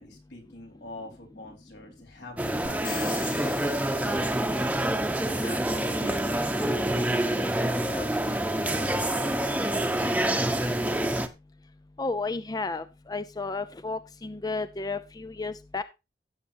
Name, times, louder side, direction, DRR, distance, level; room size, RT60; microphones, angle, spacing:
voice 1, 0.0-4.6 5.4-10.6, left 2 dB, 80° left, 1 dB, 4.4 m, -45 dB
sound 1, 2.4-11.3, right 1 dB, 10° right, 0.9 m, -27 dB
sound 2, 2.7-4.7, left 6 dB, 50° left, 2.5 m, -41 dB
voice 2, 12.0-15.8, left 3 dB, 20° left, 12 dB, 0.5 m, -32 dB
15.5 x 7.5 x 2.7 m, 0.26 s
head